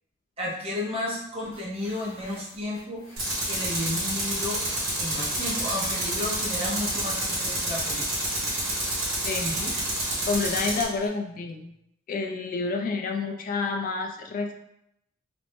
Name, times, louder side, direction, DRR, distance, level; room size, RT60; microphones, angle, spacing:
voice 1, 0.4-3.0 3.4-4.6 5.0-8.1 9.4-9.7, left 1 dB, 30° right, -6 dB, 0.6 m, -32 dB
sound 1, 1.4-11.1, left 1 dB, 75° left, 0.8 m, -46 dB
Tools, 3.2-10.9, right 1 dB, 70° right, 1.2 m, -29 dB
voice 2, 10.3-11.7 12.1-14.5, left 4 dB, 40° left, 3 dB, 0.3 m, -29 dB
2.4 x 2.0 x 3.4 m, 0.79 s
head